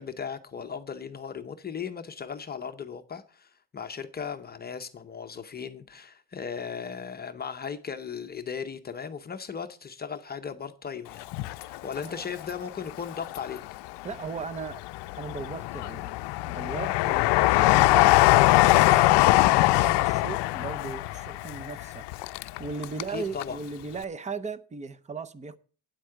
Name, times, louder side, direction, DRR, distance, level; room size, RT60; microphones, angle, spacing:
voice 1, 0.0-13.6 23.1-23.6, left 6 dB, 25° left, 0.7 m, -37 dB
Train, 11.2-12.4 12.9-13.9 14.4-23.1 23.4-23.5, left 18 dB, 85° left, 0.6 m, -22 dB
voice 2, 14.0-14.8 15.2-16.2 16.4-22.1 22.6-25.6, right 4 dB, 20° right, 0.6 m, -37 dB
9.5 x 8.2 x 7.6 m
cardioid pair, 180°, 40 cm